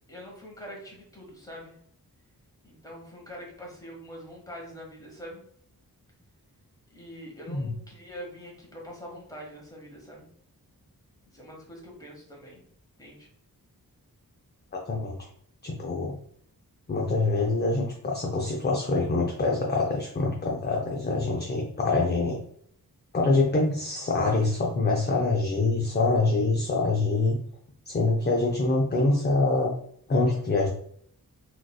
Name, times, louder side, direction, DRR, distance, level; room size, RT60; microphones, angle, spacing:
voice 1, 0.1-1.8 2.6-5.4 6.9-10.3 11.3-12.6 13.0-13.3, equal, 10° left, -2 dB, 1.1 m, -44 dB
voice 2, 14.7-15.2 15.6-16.2 16.9-22.4 23.1-27.4 27.9-29.7 30.1-30.7, left 3 dB, 30° left, -1 dB, 0.5 m, -25 dB
3.8 x 2.5 x 2.3 m, 0.66 s
wide cardioid pair, 90°, 36 cm